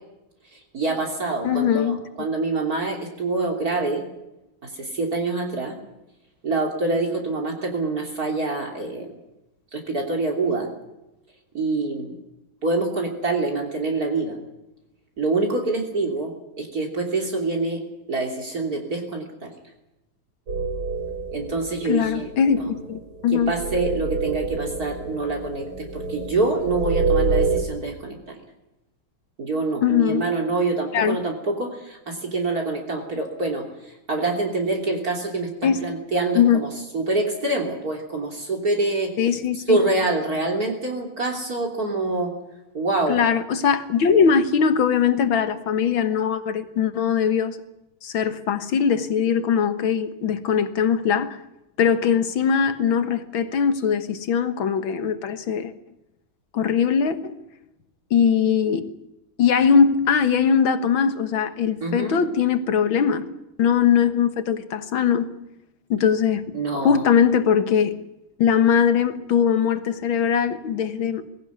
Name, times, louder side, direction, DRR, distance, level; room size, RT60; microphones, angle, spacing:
voice 1, 0.7-4.0 4.6-5.8 6.4-9.1 9.7-10.7 11.5-12.1 12.6-14.4 15.2-17.8 18.1-19.5 21.3-22.3 23.3-28.4 29.4-33.6 34.1-36.7 36.9-39.1 39.7-42.3 42.7-43.2 61.8-62.2 66.5-67.0, right 3 dB, 45° right, 3.5 m, -25 dB
voice 2, 1.4-2.0 21.9-23.5 29.8-30.3 30.9-31.2 35.6-35.9 36.4-36.6 39.2-39.8 43.1-47.6 48.0-51.4 51.8-55.7 56.5-57.4 58.1-58.9 59.4-63.3 63.6-65.3 65.9-68.0 68.4-71.3, left 7 dB, 75° left, 2.2 m, -21 dB
sound 1, 20.5-27.6, right 4 dB, 85° right, 3.6 m, -27 dB
21.5 x 16.5 x 9.5 m
omnidirectional pair, 2.2 m